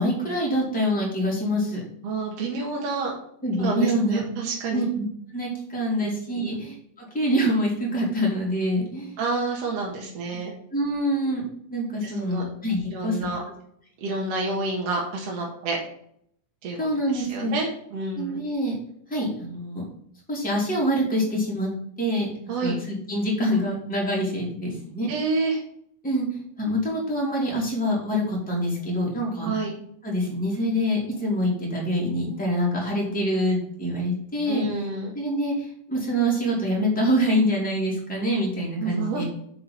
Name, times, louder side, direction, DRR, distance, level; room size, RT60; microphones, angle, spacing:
voice 1, 0.0-1.8 3.4-4.2 4.7-5.0 5.3-9.1 10.7-11.4 11.7-13.2 16.8-17.5 18.1-18.7 19.1-19.8 20.3-21.7 22.0-22.3 22.6-25.1 26.0-26.3 26.6-29.5 30.0-34.7 35.1-39.2, equal, 5° left, -4 dB, 2.9 m, -25 dB
voice 2, 2.0-3.1 3.6-4.9 6.0-6.1 6.4-6.6 9.2-10.5 12.0-12.4 12.8-13.4 14.0-15.8 16.6-16.8 17.1-18.4 22.5-22.8 25.1-25.6 29.4-29.7 34.5-35.1 38.8-39.2, right 3 dB, 60° right, -2 dB, 2.5 m, -29 dB
7.5 x 6.1 x 5.6 m, 0.68 s
omnidirectional pair, 3.5 m